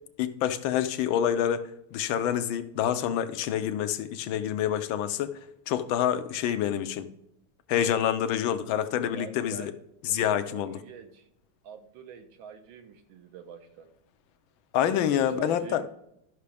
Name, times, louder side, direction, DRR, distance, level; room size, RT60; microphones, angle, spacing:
voice 1, 0.2-5.3 5.7-7.1 7.7-9.7 10.0-10.8 14.7-15.8, left 10 dB, 70° left, 1.3 m, -27 dB
voice 2, 9.1-9.7 10.1-10.2 10.5-11.3 11.6-13.9 14.9-15.9, right 7 dB, 70° right, 1.7 m, -45 dB
13.0 x 5.9 x 3.4 m
omnidirectional pair, 2.4 m